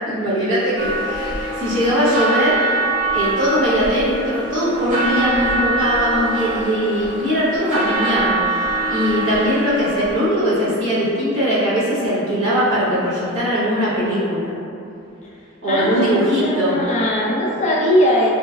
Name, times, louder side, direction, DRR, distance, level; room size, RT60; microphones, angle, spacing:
voice 1, 0.1-2.6 3.1-14.5 15.6-16.7, equal, 65° right, -12 dB, 1.2 m, -20 dB
sound 1, 0.8-10.3, right 2 dB, 35° right, 0.7 m, -24 dB
voice 2, 15.7-18.3, equal, 35° left, -4 dB, 0.3 m, -20 dB
3.0 x 3.0 x 2.4 m, 2.7 s
head